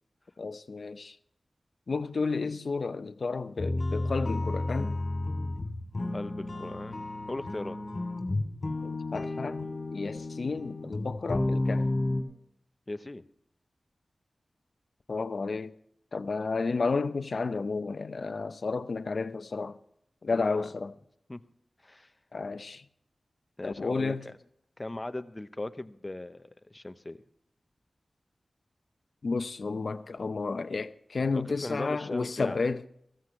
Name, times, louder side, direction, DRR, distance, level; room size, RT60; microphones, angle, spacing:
voice 1, 0.4-1.2 1.9-5.0 8.8-11.9 15.1-15.7 16.1-19.8 20.2-20.9 22.3-22.8 23.6-24.2 29.2-32.8, left 4 dB, 70° left, 0.7 m, -32 dB
sound 1, 3.6-12.2, left 2 dB, 45° left, 2.9 m, -32 dB
voice 2, 6.1-7.8 12.9-13.2 20.3-20.7 21.3-21.4 21.8-22.1 23.6-24.4 24.8-27.2 31.3-32.6, left 2 dB, 30° left, 0.9 m, -38 dB
15.5 x 14.5 x 3.2 m
wide cardioid pair, 60°, 0 cm